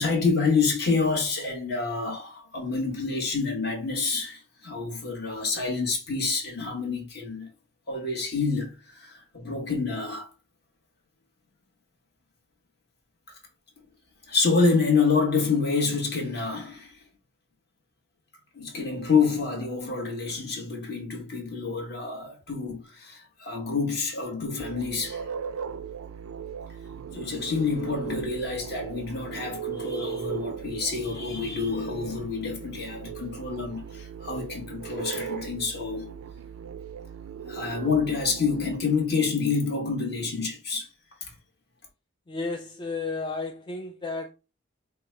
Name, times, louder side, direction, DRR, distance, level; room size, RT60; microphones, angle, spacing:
voice 1, 0.0-7.5 7.9-10.3 14.3-17.0 18.5-25.3 27.1-36.1 37.4-40.9, left 4 dB, 50° left, 1.3 m, -27 dB
sound 1, 24.6-38.8, right 7 dB, 85° right, 0.4 m, -38 dB
voice 2, 42.3-44.3, left 3 dB, 20° left, 0.3 m, -32 dB
5.2 x 2.3 x 3.1 m
head